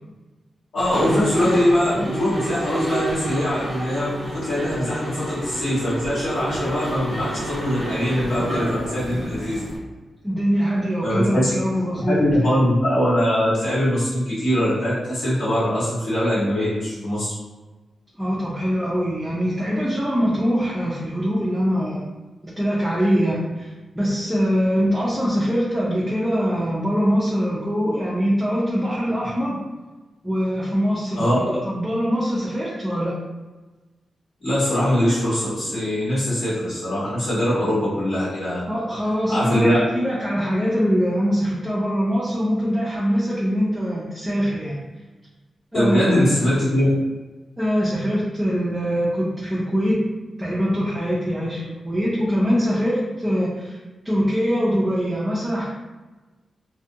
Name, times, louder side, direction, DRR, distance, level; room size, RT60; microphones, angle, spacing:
voice 1, 0.7-9.6 11.0-11.5 12.0-17.3 31.2-31.4 34.4-38.6 39.3-39.8 45.7-46.9, equal, 60° left, -11 dB, 1.2 m, -22 dB
Mechanisms, 0.8-9.8, right 1 dB, 40° left, 0.8 m, -29 dB
voice 2, 10.2-12.5 18.2-22.1 22.4-23.7 23.9-29.6 30.2-33.1 38.7-44.8 45.7-46.6 47.6-50.0 50.4-53.8 54.0-55.6, equal, 10° right, -7 dB, 0.4 m, -23 dB
2.3 x 2.1 x 2.7 m, 1.2 s
wide cardioid pair, 140°, 0 cm